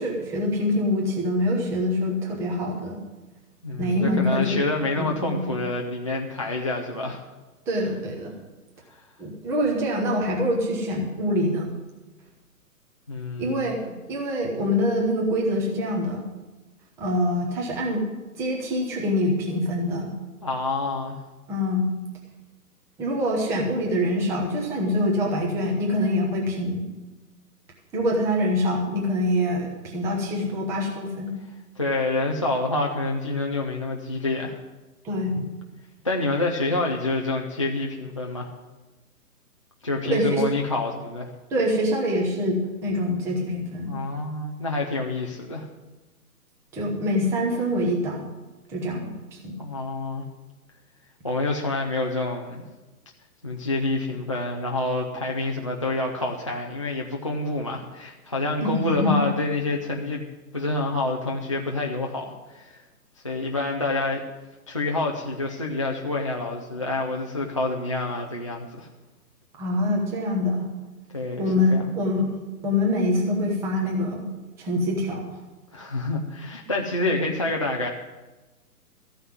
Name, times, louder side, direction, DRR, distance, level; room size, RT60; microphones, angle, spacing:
voice 1, 0.0-3.0 3.8-4.6 5.0-5.4 7.7-8.3 9.2-11.7 13.4-13.8 14.1-16.2 17.0-18.0 18.4-20.1 21.5-21.8 23.0-26.9 27.9-31.3 35.0-35.4 40.1-40.4 41.5-43.9 46.7-48.2 48.7-49.5 58.6-59.3 69.6-70.7 71.4-72.3 72.6-74.3 74.6-75.4, left 1 dB, 5° right, -1 dB, 0.8 m, -25 dB
voice 2, 3.6-7.2 8.9-9.0 13.1-13.9 20.4-21.2 31.8-34.6 36.0-38.5 39.8-41.3 43.9-45.7 49.6-50.3 51.2-52.6 53.4-60.2 60.5-62.8 63.2-64.2 64.7-68.9 71.1-71.4 71.7-71.9 75.7-77.9, left 2 dB, 20° left, -1 dB, 0.4 m, -27 dB
14.0 x 5.7 x 9.4 m, 1.2 s
hypercardioid pair, 150°, 47 cm